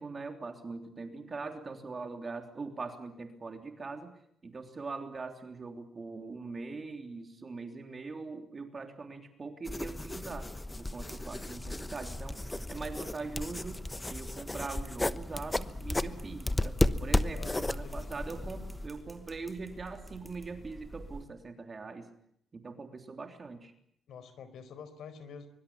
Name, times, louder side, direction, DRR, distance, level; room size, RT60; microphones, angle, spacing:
voice 1, 0.0-10.5 10.8-12.4 12.7-13.8 14.1-22.1 22.5-23.7, right 4 dB, 30° right, 5 dB, 3.3 m, -42 dB
sound 1, 9.6-18.9, left 2 dB, 10° left, 1.0 m, -34 dB
sound 2, 10.9-21.2, right 1 dB, 5° right, 3.4 m, -50 dB
voice 2, 17.3-18.1 24.1-25.5, left 6 dB, 75° left, 13 dB, 4.6 m, -47 dB
24.5 x 24.0 x 8.6 m, 0.70 s
cardioid pair, 120°, 0 cm